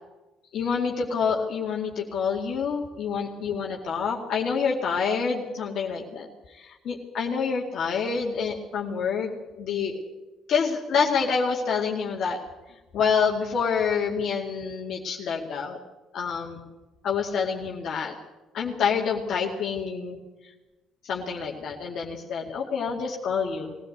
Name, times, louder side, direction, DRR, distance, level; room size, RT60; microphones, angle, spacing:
voice 1, 0.5-10.0 10.5-12.4 12.9-15.8 16.1-16.6 17.0-18.1 18.5-20.2 21.0-23.8, left 6 dB, 60° left, -1 dB, 2.3 m, -27 dB
21.0 x 17.0 x 8.1 m, 1.1 s
hypercardioid pair, 50°, 0 cm